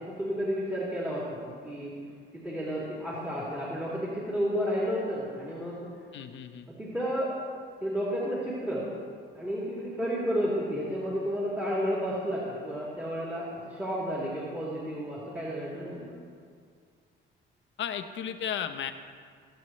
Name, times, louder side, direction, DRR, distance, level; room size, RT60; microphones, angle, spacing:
voice 1, 0.0-1.9 2.3-5.9 6.8-7.3 7.8-8.9 9.3-16.1, equal, 10° right, -8 dB, 3.4 m, -31 dB
voice 2, 6.1-6.7 17.8-18.9, left 8 dB, 70° left, 8 dB, 1.0 m, -34 dB
25.5 x 9.0 x 3.3 m, 2.1 s
cardioid pair, 90°, 20 cm